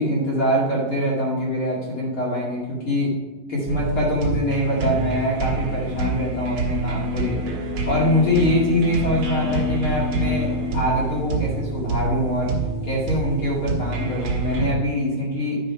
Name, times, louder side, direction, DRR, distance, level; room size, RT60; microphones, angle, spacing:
voice 1, 0.0-3.1 3.5-7.5 7.9-12.5 12.8-15.6, left 1 dB, 45° left, -5 dB, 1.8 m, -23 dB
sound 1, 3.7-14.7, right 2 dB, 55° right, 2.3 m, -26 dB
11.5 x 5.4 x 4.5 m, 1.2 s
omnidirectional pair, 5.9 m